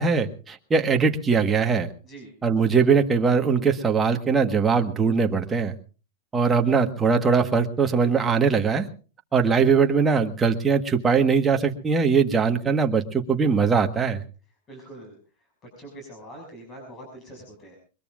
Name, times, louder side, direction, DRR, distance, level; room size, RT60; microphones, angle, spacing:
voice 1, 0.0-1.9 2.4-5.7 6.3-8.9 9.3-14.2, right 5 dB, 15° right, 4 dB, 1.5 m, -21 dB
voice 2, 14.7-15.2 15.6-17.8, right 1 dB, 25° left, 0 dB, 6.4 m, -43 dB
22.0 x 22.0 x 2.5 m, 0.35 s
supercardioid pair, 145°, 0 cm